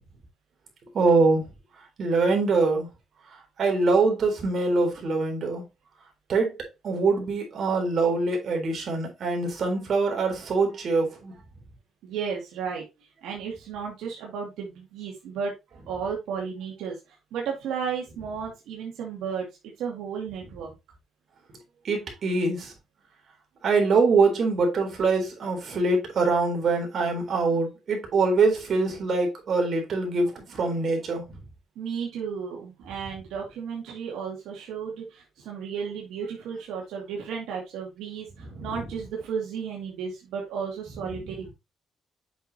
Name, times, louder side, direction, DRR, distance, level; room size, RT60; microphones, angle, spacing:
voice 1, 0.9-1.4 2.0-2.9 3.6-5.7 6.3-6.6 6.8-11.3 21.8-22.7 23.6-31.4 38.5-38.8, right 3 dB, 55° right, 3.8 m, -24 dB
voice 2, 12.0-12.8 13.2-15.5 15.9-19.5 19.8-20.7 31.8-41.5, right 6 dB, 90° right, 2.3 m, -33 dB
8.0 x 6.2 x 2.8 m
cardioid pair, 90°, 0 cm